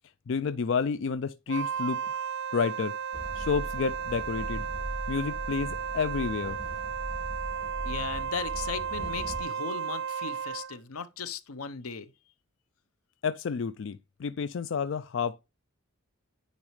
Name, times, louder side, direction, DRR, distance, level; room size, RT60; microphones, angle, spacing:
voice 1, 0.3-2.2 2.5-2.9 3.3-4.6 5.1-6.6 13.2-15.4, left 5 dB, 55° left, 0.4 m, -30 dB
Wind instrument woodwind instrument, 1.5-10.8, right 7 dB, 55° right, 0.3 m, -34 dB
Train, 3.1-9.4, right 1 dB, 20° left, 2.2 m, -39 dB
voice 2, 7.8-12.1, left 6 dB, 85° left, 0.8 m, -37 dB
9.7 x 4.0 x 3.2 m
head